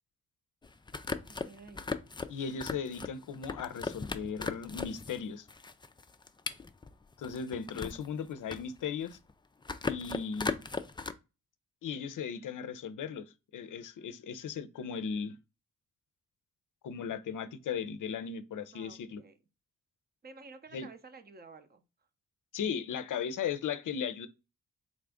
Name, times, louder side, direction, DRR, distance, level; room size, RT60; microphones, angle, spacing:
sound 1, 0.6-5.2 5.5-8.1 8.4-9.3 9.6-11.1, left 4 dB, 15° left, 0.3 m, -38 dB
voice 1, 1.3-1.8 18.7-19.4 20.2-21.8, right 4 dB, 25° right, 0.7 m, -52 dB
voice 2, 2.3-5.5 7.2-9.2 9.8-10.6 11.8-15.4 16.8-19.2 20.7-20.9 22.5-24.3, left 7 dB, 60° left, 0.6 m, -37 dB
4.1 x 2.5 x 3.4 m
supercardioid pair, 45°, 37 cm